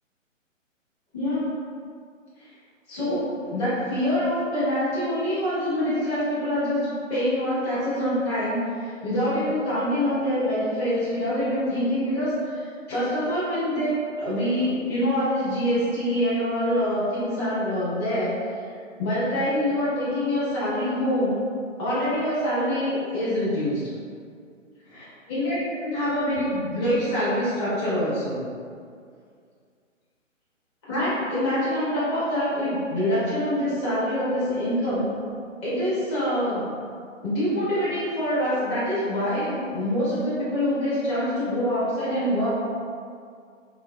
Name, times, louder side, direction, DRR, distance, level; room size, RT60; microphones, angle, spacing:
voice 1, 1.1-1.5 2.4-2.5 2.9-18.3 19.0-21.4 21.8-23.8 25.3-28.4 30.9-35.1 35.6-36.7 37.2-42.5, equal, 20° left, -11 dB, 1.2 m, -25 dB
3.7 x 3.2 x 2.4 m, 2.2 s
figure-of-eight pair, 135°, 39 cm